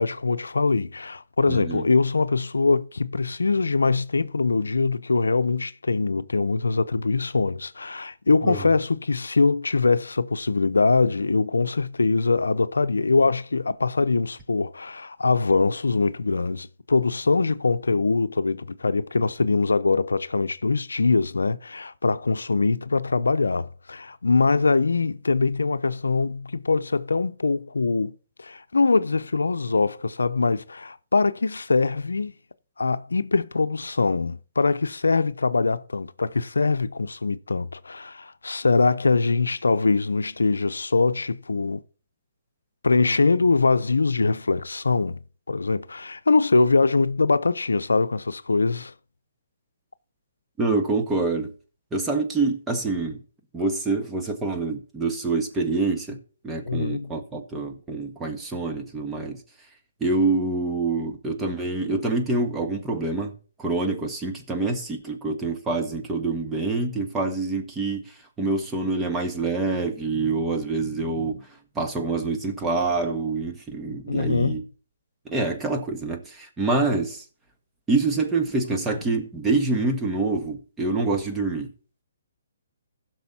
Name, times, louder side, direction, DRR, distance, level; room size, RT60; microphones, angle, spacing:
voice 1, 0.0-32.3 32.8-41.8 42.8-45.2 45.5-48.9 56.7-57.1 74.1-74.6, left 3 dB, 90° left, 0.6 m, -23 dB
voice 2, 1.5-1.9 8.4-8.6 50.6-51.5 51.9-53.2 53.5-56.2 56.4-59.4 60.0-63.3 63.6-71.5 71.7-74.6 75.2-77.2 77.9-81.7, right 3 dB, 10° right, 1.5 m, -26 dB
15.5 x 6.2 x 4.2 m
hypercardioid pair, 145°, 0 cm